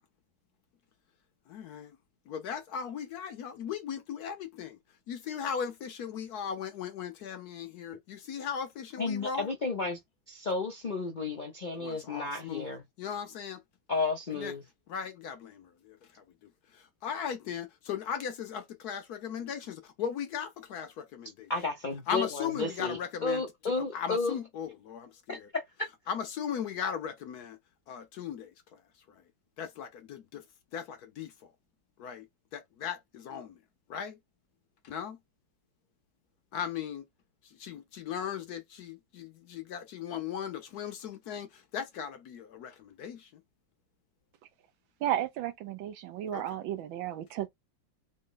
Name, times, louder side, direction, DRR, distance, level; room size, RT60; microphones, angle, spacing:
voice 1, 1.5-2.0 2.3-4.8 5.1-9.5 11.8-12.7 13.0-13.6 14.3-14.5 14.9-21.5 22.1-25.5 26.1-27.6 27.9-28.8 29.1-29.2 29.6-30.4 30.7-31.3 32.0-32.3 32.5-33.6 33.9-34.2 34.8-35.2 36.5-37.1 37.4-43.4 46.3-46.5, left 8 dB, 65° left, 1.0 m, -38 dB
voice 2, 9.0-10.0 10.3-12.8 13.9-14.6 21.5-24.4 25.3-25.6, left 3 dB, 85° left, 0.4 m, -32 dB
voice 3, 45.0-47.5, right 11 dB, 90° right, 1.5 m, -33 dB
4.0 x 2.1 x 3.8 m
omnidirectional pair, 2.1 m